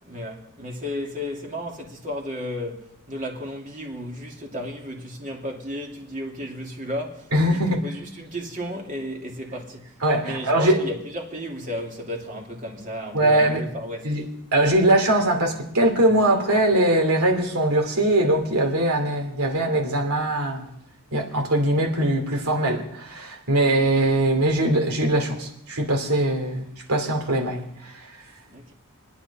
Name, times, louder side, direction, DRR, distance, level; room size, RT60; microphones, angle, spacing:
voice 1, 0.0-14.2 28.4-28.7, equal, 35° right, 2.6 m, -34 dB
voice 2, 7.3-7.8 10.0-10.8 13.1-13.6 14.0-14.2 14.5-20.7 21.1-27.7, right 1 dB, 70° right, 2.9 m, -21 dB
29.5 x 10.0 x 4.2 m
head